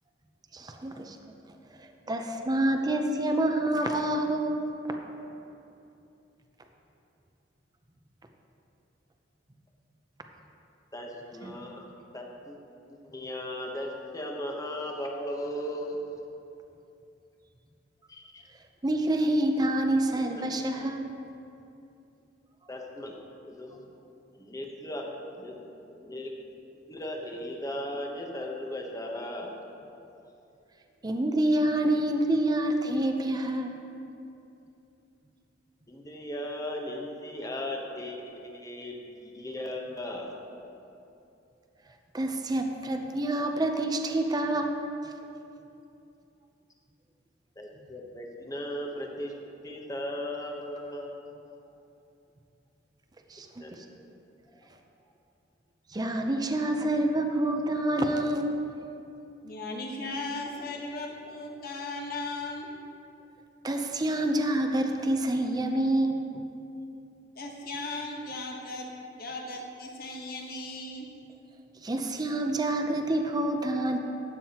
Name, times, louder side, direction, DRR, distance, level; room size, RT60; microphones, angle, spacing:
voice 1, 0.5-1.2 1.8-4.7 11.4-11.6 18.8-21.0 31.0-33.7 42.1-44.8 53.3-53.5 55.9-58.5 63.6-66.3 71.8-74.0, right 1 dB, 20° right, 4 dB, 0.6 m, -27 dB
voice 2, 10.9-11.9 12.1-12.6 12.9-16.0 18.1-18.4 20.1-20.5 22.7-23.2 23.5-23.9 24.3-25.1 25.4-25.6 25.9-26.3 26.8-29.5 35.9-40.3 47.6-49.3 49.6-51.3 53.6-53.7 54.6-54.7, left 1 dB, 20° left, 0 dB, 0.9 m, -37 dB
voice 3, 59.4-62.7 67.3-68.9 69.2-71.1, left 2 dB, 55° left, 0 dB, 1.2 m, -37 dB
12.5 x 9.2 x 2.9 m, 2.8 s
head